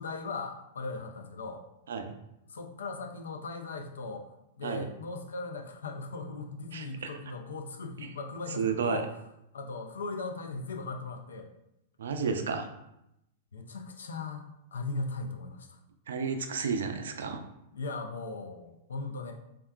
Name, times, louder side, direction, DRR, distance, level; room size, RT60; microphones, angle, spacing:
voice 1, 0.0-1.6 2.5-4.3 4.6-9.1 9.5-11.5 13.5-15.8 17.7-19.3, left 3 dB, 80° left, 4 dB, 0.4 m, -38 dB
voice 2, 6.7-7.1 8.0-8.1 8.6-9.0 12.0-12.7 16.1-17.4, right 6 dB, 75° right, 6 dB, 0.3 m, -32 dB
3.5 x 2.2 x 2.3 m, 0.84 s
hypercardioid pair, 105°, 0 cm